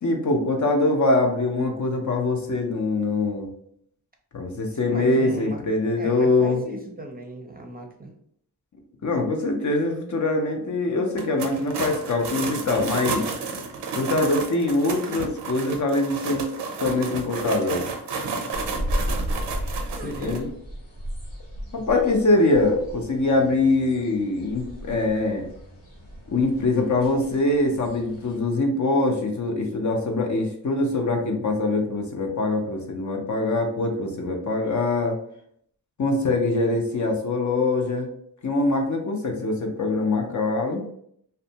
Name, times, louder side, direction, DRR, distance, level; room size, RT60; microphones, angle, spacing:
voice 1, 0.0-3.5 4.3-6.6 9.0-13.2 14.0-16.5 16.8-17.8 20.2-20.5 21.7-25.4 26.3-35.2 36.0-38.1 38.4-40.8, left 2 dB, 45° left, 2 dB, 0.6 m, -23 dB
voice 2, 4.7-5.6 6.0-8.1 19.8-20.5, right 1 dB, 25° right, 2 dB, 0.6 m, -36 dB
sound 1, 11.1-20.4, right 4 dB, 85° right, 0.5 m, -32 dB
sound 2, 18.5-28.4, equal, 90° left, 0.9 m, -34 dB
2.4 x 2.2 x 2.7 m, 0.68 s
cardioid pair, 40°, 40 cm